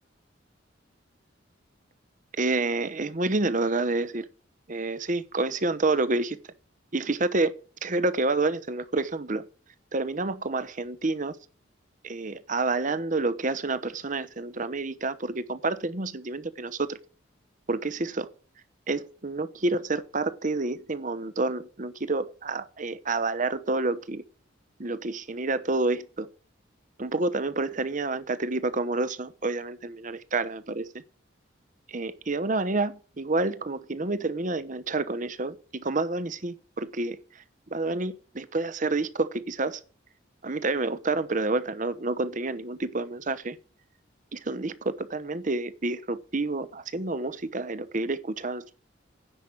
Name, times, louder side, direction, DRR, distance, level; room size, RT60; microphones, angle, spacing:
voice 1, 2.4-4.3 4.7-6.4 6.9-7.5 7.8-9.4 9.9-11.4 12.0-17.0 17.7-18.3 18.9-24.2 24.8-26.3 27.0-30.9 31.9-37.2 37.7-39.8 40.4-43.6 44.3-48.7, right 3 dB, 40° right, 0.9 m, -29 dB
10.0 x 6.1 x 8.4 m
head